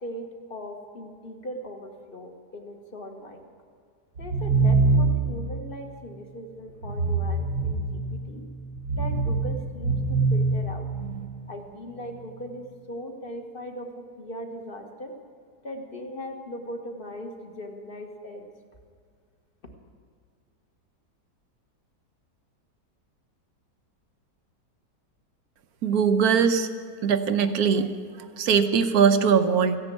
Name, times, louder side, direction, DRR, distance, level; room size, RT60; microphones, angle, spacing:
voice 1, 0.0-3.4 4.2-8.5 8.9-10.9 11.5-15.1 15.6-18.5, equal, 35° left, 3 dB, 1.7 m, -39 dB
sound 1, 4.2-5.5 6.8-8.2 8.8-11.3, right 3 dB, 90° right, 2.5 m, -24 dB
voice 2, 25.8-26.7 27.0-27.9 28.4-29.8, right 6 dB, 65° right, 9 dB, 1.2 m, -21 dB
15.5 x 10.5 x 8.4 m, 2.1 s
omnidirectional pair, 1.9 m